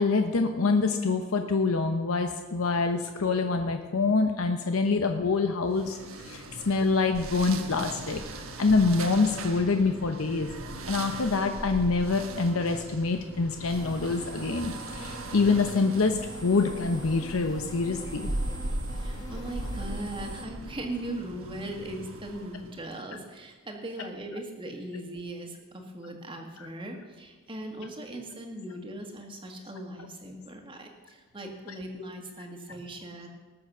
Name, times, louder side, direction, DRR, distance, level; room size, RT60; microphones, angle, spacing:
voice 1, 0.0-8.2 8.6-10.5 10.9-18.3, left 4 dB, 90° left, 5 dB, 0.8 m, -26 dB
sound 1, 5.7-22.9, right 2 dB, 80° right, 1.2 m, -39 dB
sound 2, 13.7-20.5, equal, 20° left, 1.4 m, -43 dB
voice 2, 19.0-33.3, right 1 dB, 25° right, 2 dB, 1.6 m, -39 dB
19.0 x 7.0 x 6.1 m, 1.3 s
head